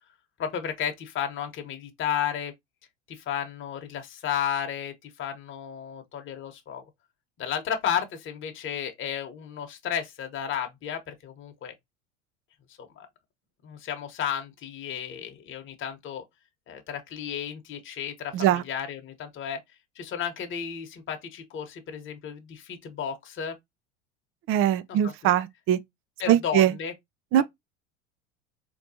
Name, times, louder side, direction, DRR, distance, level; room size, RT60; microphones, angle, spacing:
voice 1, 0.4-2.5 3.1-6.8 7.4-11.7 12.8-13.1 13.6-16.2 16.7-19.6 19.9-23.5 24.9-25.3 26.2-26.9 27.4-27.5, left 8 dB, 35° left, 1.1 m, -33 dB
voice 2, 24.5-25.8 26.3-26.7 27.3-27.4, right 11 dB, 35° right, 0.4 m, -21 dB
4.1 x 2.9 x 2.7 m
hypercardioid pair, 80°, 37 cm